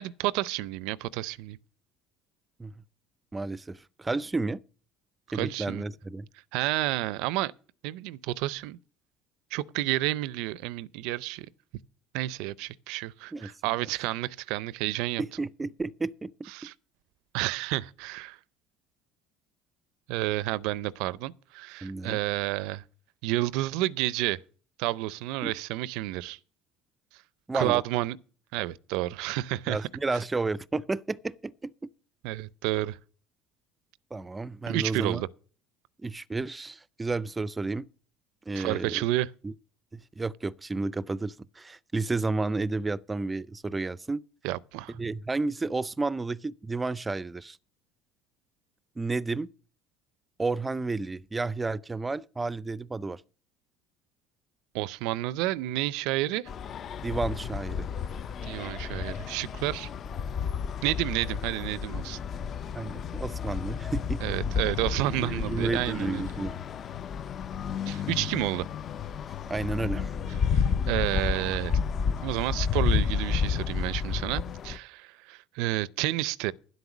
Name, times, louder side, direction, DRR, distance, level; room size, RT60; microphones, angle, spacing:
voice 1, 0.0-1.6 5.3-5.8 6.5-7.5 7.8-8.8 9.5-11.5 12.1-15.2 16.5-16.7 17.3-18.4 20.1-22.8 23.2-24.4 24.8-26.4 27.5-28.2 28.5-29.8 30.1-30.2 32.2-33.0 34.7-35.3 38.5-39.3 44.4-45.0 54.7-56.5 58.4-59.9 60.8-62.2 64.2-66.2 67.9-68.7 70.4-71.8 72.2-76.5, right 17 dB, 80° right, 0.5 m, -30 dB
voice 2, 3.3-4.6 5.3-6.3 13.3-13.5 15.2-16.3 21.8-22.2 25.4-25.5 27.5-27.8 29.7-31.7 34.1-35.2 36.0-37.9 38.5-39.0 39.4-39.5 39.9-44.2 45.0-47.6 49.0-49.5 50.4-53.2 57.0-57.8 62.7-64.2 65.2-66.6 69.5-70.2, right 3 dB, 15° right, 0.4 m, -31 dB
sound 1, 56.5-74.8, left 6 dB, 40° left, 0.6 m, -31 dB
10.5 x 8.1 x 6.0 m
cardioid pair, 115°, 0 cm